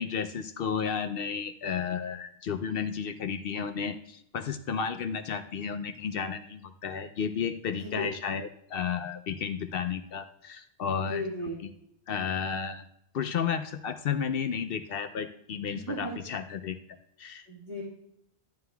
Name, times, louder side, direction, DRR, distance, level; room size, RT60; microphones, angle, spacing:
voice 1, 0.0-11.2 12.1-12.8 13.1-16.8 17.2-17.5, left 7 dB, 65° left, 9 dB, 0.7 m, -32 dB
voice 2, 11.0-11.6 15.7-16.1 17.5-17.8, left 1 dB, 60° right, -6 dB, 2.0 m, -35 dB
11.0 x 10.5 x 2.3 m, 0.75 s
omnidirectional pair, 1.1 m